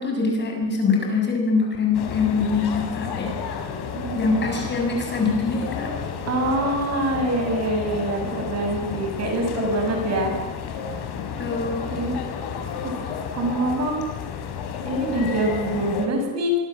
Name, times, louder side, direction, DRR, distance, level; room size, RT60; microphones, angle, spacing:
voice 1, 0.0-3.5 4.1-5.9 11.1-12.0, left 4 dB, 25° left, 2 dB, 7.0 m, -24 dB
sound 1, 1.9-16.1, left 6 dB, 80° left, 5.1 m, -31 dB
voice 2, 3.9-4.3 6.2-10.3 11.4-11.5 11.9-12.2 12.8-12.9 13.3-14.1 14.9-16.6, right 1 dB, 40° right, 4 dB, 6.5 m, -25 dB
25.0 x 25.0 x 7.5 m, 0.99 s
cardioid pair, 170°, 39 cm